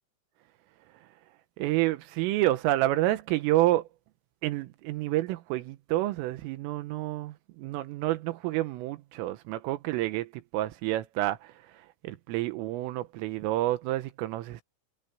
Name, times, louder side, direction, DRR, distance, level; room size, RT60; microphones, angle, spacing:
voice 1, 1.6-3.9 4.4-14.6, right 16 dB, 85° right, 3.7 m, -29 dB
omnidirectional pair, 5.7 m